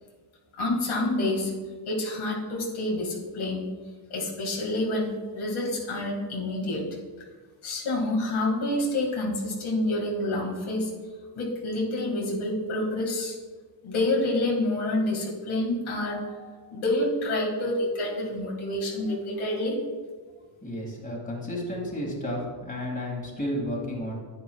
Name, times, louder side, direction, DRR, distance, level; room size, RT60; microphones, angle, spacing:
voice 1, 0.6-1.5 1.9-3.7 4.1-6.8 7.6-10.9 11.3-13.3 13.8-19.7, left 1 dB, 80° left, -2 dB, 2.1 m, -28 dB
voice 2, 20.6-22.4 22.7-24.1, left 1 dB, 15° left, -2 dB, 2.2 m, -32 dB
10.0 x 9.5 x 2.3 m, 1.4 s
cardioid pair, 100°, 48 cm